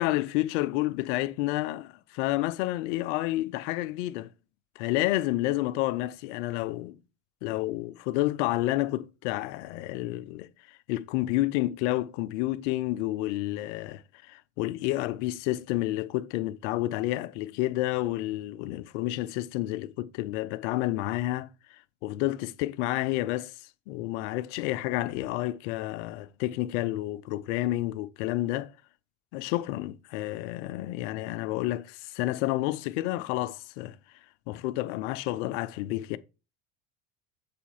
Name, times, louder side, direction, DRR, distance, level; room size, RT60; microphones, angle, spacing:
voice 1, 0.0-4.3 4.8-7.0 7.4-10.5 10.9-14.0 14.3-21.5 22.0-23.6 23.9-28.7 29.3-34.0 34.5-36.2, left 16 dB, 60° left, 0.7 m, -30 dB
6.9 x 5.1 x 4.5 m
figure-of-eight pair, 70°, 41 cm